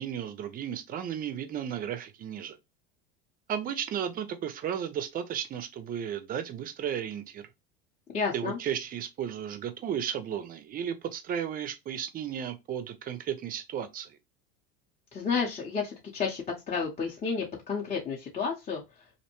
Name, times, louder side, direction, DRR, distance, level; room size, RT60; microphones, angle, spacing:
voice 1, 0.0-2.6 3.5-7.5 8.3-14.2, right 9 dB, 30° right, 0.4 m, -34 dB
voice 2, 8.1-8.6 15.1-18.8, left 5 dB, 25° left, 0.6 m, -31 dB
2.6 x 2.1 x 2.9 m
hypercardioid pair, 100°, 29 cm